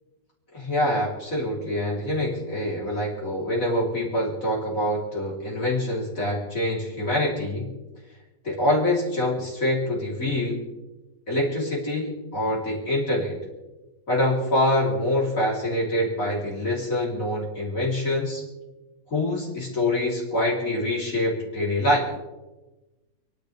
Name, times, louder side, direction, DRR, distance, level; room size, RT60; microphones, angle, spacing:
voice 1, 0.5-7.7 8.4-10.6 11.3-13.4 14.1-18.4 19.1-22.0, left 1 dB, 50° left, -4 dB, 3.9 m, -25 dB
29.5 x 10.5 x 3.4 m, 1.1 s
omnidirectional pair, 1.9 m